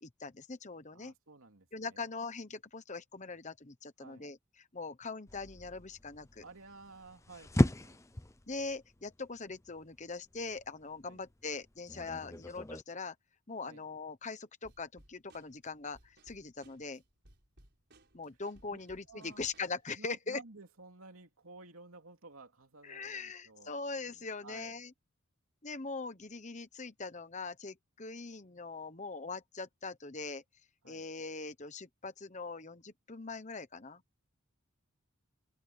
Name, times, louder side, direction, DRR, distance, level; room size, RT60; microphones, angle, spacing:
voice 1, 0.0-1.1 1.7-6.4 8.5-13.1 13.5-17.0 18.1-20.4 22.8-24.9 25.6-30.4 30.8-34.0, left 4 dB, 30° left, 1.1 m, -42 dB
voice 2, 0.9-2.1 4.0-4.3 6.4-8.0 11.0-11.2 12.2-12.5 13.6-13.8 18.7-18.8 19.1-19.4 19.9-23.7 24.0-24.8 30.8-31.0, right 3 dB, 70° right, 3.0 m, -54 dB
sound 1, 5.3-12.8, left 1 dB, 15° left, 0.6 m, -36 dB
Drum kit / Snare drum, 14.6-19.9, right 1 dB, 50° right, 5.7 m, -63 dB
open air
head